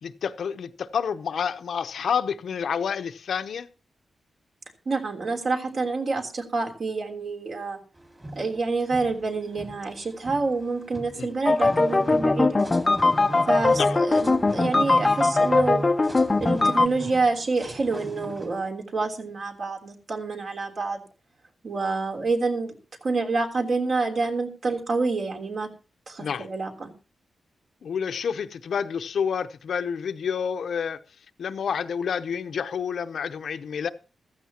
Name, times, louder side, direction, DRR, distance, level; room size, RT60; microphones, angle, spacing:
voice 1, 0.0-3.7 11.2-11.3 13.7-14.0 26.2-26.5 27.8-31.0 31.4-33.9, left 7 dB, 75° left, 0.8 m, -29 dB
voice 2, 4.8-7.8 8.3-12.9 13.5-15.8 16.4-21.0 21.6-22.7 23.0-25.7 26.1-26.9, right 3 dB, 55° right, 3.4 m, -27 dB
sound 1, 8.0-18.7, right 1 dB, 15° right, 2.4 m, -38 dB
sound 2, 11.4-16.9, left 3 dB, 25° left, 0.6 m, -21 dB
15.0 x 14.5 x 2.9 m
wide cardioid pair, 140°, 0 cm